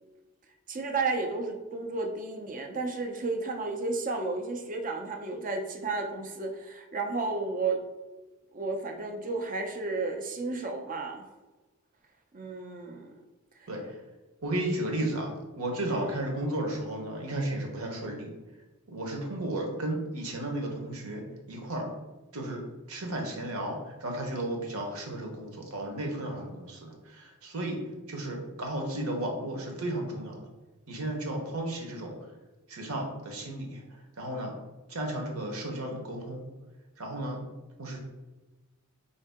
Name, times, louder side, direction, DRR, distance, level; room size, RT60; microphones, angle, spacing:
voice 1, 0.7-7.8 8.5-11.2 12.3-13.1 15.9-16.1, right 3 dB, 40° right, 3 dB, 0.6 m, -32 dB
voice 2, 13.7-14.0 14.4-18.3 18.9-21.9 22.3-22.6 22.9-27.8 28.1-30.5 30.9-32.1 32.7-34.5 34.9-36.4 37.0-37.4 37.8-38.0, right 1 dB, 75° right, 1 dB, 1.0 m, -34 dB
4.8 x 2.7 x 3.5 m, 1.2 s
head